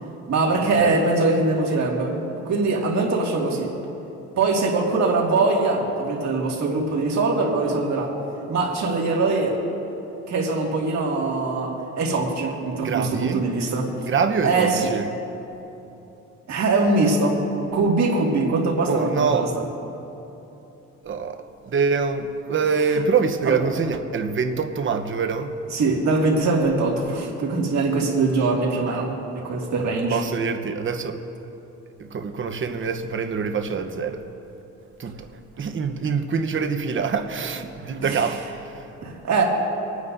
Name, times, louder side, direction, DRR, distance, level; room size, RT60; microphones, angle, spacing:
voice 1, 0.3-3.7 4.4-8.1 8.5-9.6 10.3-13.9 14.4-14.9 16.5-17.4 17.7-19.5 23.5-23.6 25.7-29.1 29.4-30.2 38.1-38.2 39.0-39.4, right 3 dB, 65° right, -2 dB, 2.3 m, -22 dB
voice 2, 12.8-13.4 14.1-15.1 18.9-19.5 21.0-25.6 30.1-31.2 32.0-34.2 35.0-35.3 35.6-38.9, right 5 dB, 40° right, 7 dB, 1.0 m, -25 dB
26.5 x 9.5 x 2.7 m, 2.9 s
cardioid pair, 90°, 30 cm